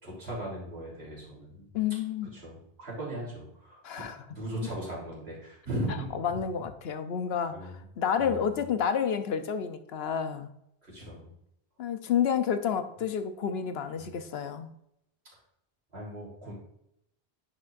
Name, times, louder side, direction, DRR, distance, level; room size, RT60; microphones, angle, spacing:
voice 1, 0.0-1.7 2.3-3.8 4.3-6.1 7.5-7.8 8.2-8.5 10.8-11.3 14.0-14.1 15.9-16.5, right 1 dB, 85° right, -6 dB, 3.6 m, -38 dB
voice 2, 1.7-2.3 3.8-4.2 6.1-10.5 11.8-14.7, left 7 dB, 80° left, 9 dB, 1.0 m, -30 dB
9.7 x 6.2 x 2.5 m, 0.77 s
omnidirectional pair, 1.0 m